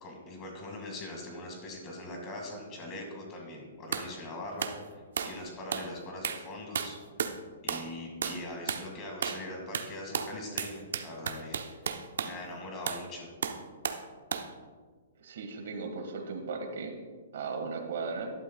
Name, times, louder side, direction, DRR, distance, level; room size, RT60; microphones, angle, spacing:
voice 1, 0.0-4.7 5.3-7.0 7.6-11.6 12.2-13.3, left 1 dB, 20° left, 1 dB, 2.0 m, -41 dB
sound 1, 3.9-4.1 4.6-4.8 5.2-5.4 5.7-5.9 6.2-6.5 6.8-7.4 7.7-7.9 8.2-8.4 8.7-8.9 9.2-9.5 9.7-12.4 12.9-13.1 13.4-14.1 14.3-14.5, right 7 dB, 75° right, 0.8 m, -34 dB
voice 2, 15.2-16.9 17.3-18.3, right 4 dB, 60° right, 5 dB, 1.6 m, -36 dB
13.0 x 11.5 x 2.3 m, 1.5 s
hypercardioid pair, 170°, 0 cm